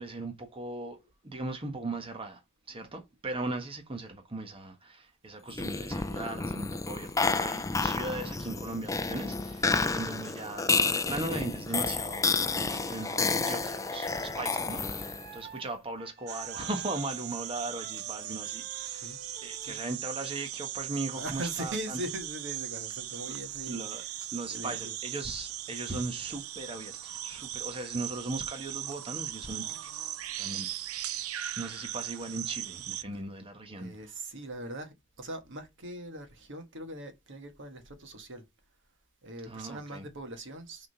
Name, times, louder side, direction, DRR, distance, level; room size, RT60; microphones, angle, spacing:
voice 1, 0.0-2.4 2.7-19.1 19.4-22.0 23.7-24.0 24.3-29.9 30.3-33.9 39.5-40.1, right 2 dB, 25° right, 1.3 m, -38 dB
sound 1, 5.5-15.4, left 4 dB, 15° left, 0.4 m, -30 dB
Wind instrument woodwind instrument, 12.1-15.7 16.0-19.8, right 5 dB, 45° right, 1.2 m, -50 dB
sound 2, 16.3-33.0, right 12 dB, 85° right, 0.6 m, -39 dB
voice 2, 19.6-20.0 21.1-25.0 25.7-25.8 33.1-33.2 33.8-38.4 39.2-40.9, right 1 dB, 60° right, 1.5 m, -41 dB
6.3 x 3.8 x 5.8 m
head